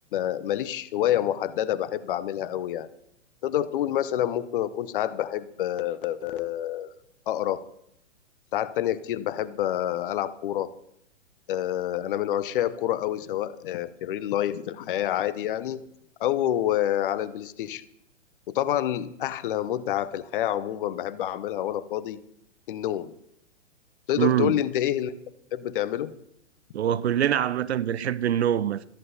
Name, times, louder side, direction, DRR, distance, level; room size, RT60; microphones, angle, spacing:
voice 1, 0.1-2.9 3.4-6.9 7.3-7.6 8.5-10.7 11.5-15.8 16.2-17.8 18.5-22.2 22.7-23.1 24.1-25.1 25.5-26.1, left 12 dB, 45° left, 0.9 m, -27 dB
voice 2, 24.2-24.6 26.7-28.8, right 10 dB, 60° right, 0.7 m, -24 dB
13.5 x 11.0 x 5.2 m
figure-of-eight pair, 115°, 36 cm